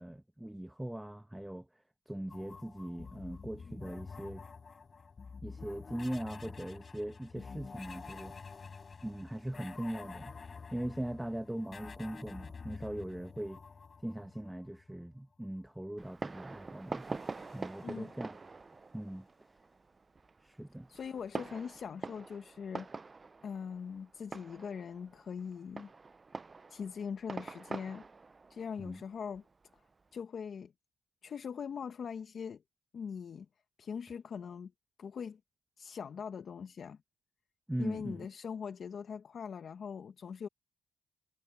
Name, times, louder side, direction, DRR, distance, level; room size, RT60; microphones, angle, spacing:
voice 1, 0.0-1.7 2.1-4.4 5.4-8.3 9.0-10.3 10.7-13.6 14.0-17.2 17.5-18.4 18.9-19.2 20.4-20.9 28.8-29.0 37.7-38.3, right 1 dB, 5° right, 1.3 m, -40 dB
sound 1, 2.3-14.9 16.9-18.5, left 5 dB, 35° left, 6.1 m, -49 dB
Fireworks, 16.0-30.1, right 4 dB, 30° right, 0.6 m, -45 dB
voice 2, 20.9-22.9 23.4-25.9 26.7-28.0 28.5-29.4 29.7-29.8 30.1-30.7 31.2-32.6 32.9-33.5 33.8-34.7 35.0-35.4 35.8-37.0 37.8-40.5, left 6 dB, 50° left, 1.1 m, -41 dB
cardioid pair, 90°, 0 cm